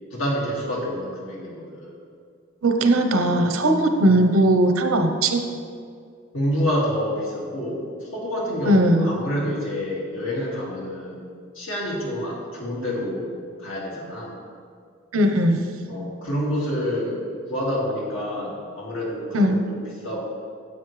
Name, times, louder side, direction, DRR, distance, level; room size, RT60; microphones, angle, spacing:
voice 1, 0.1-1.9 6.3-11.2 11.5-13.3 13.6-14.4 15.9-17.2 17.5-20.2, equal, 70° left, -4 dB, 2.3 m, -28 dB
voice 2, 2.6-5.4 8.6-9.1 15.1-15.6 19.3-19.6, right 1 dB, 90° right, 5 dB, 0.8 m, -19 dB
9.5 x 8.3 x 3.3 m, 2.2 s
head